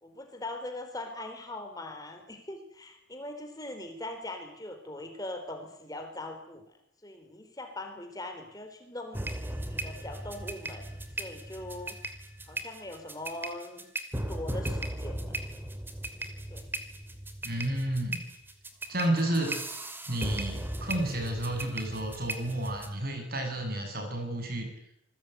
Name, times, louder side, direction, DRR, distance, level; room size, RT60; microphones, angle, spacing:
voice 1, 0.0-6.6 7.0-9.3 9.7-12.0 12.5-13.9 14.3-15.4 16.5-16.7, left 1 dB, 20° left, 5 dB, 4.2 m, -41 dB
sound 1, 9.1-22.9, right 1 dB, 10° right, 2.6 m, -37 dB
voice 2, 17.4-18.2 18.9-19.6 20.1-24.7, right 1 dB, 50° right, 5 dB, 7.7 m, -31 dB
28.0 x 20.5 x 9.5 m, 0.74 s
head